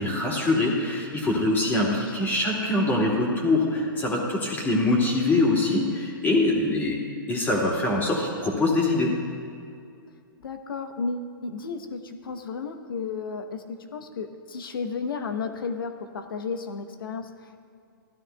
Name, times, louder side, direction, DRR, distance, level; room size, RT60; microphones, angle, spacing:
voice 1, 0.0-7.0 7.3-9.1, left 2 dB, 15° left, -2 dB, 2.3 m, -24 dB
voice 2, 1.8-2.3 10.4-17.6, left 4 dB, 75° left, 7 dB, 1.0 m, -33 dB
15.5 x 12.0 x 2.3 m, 2.3 s
hypercardioid pair, 120°, 12 cm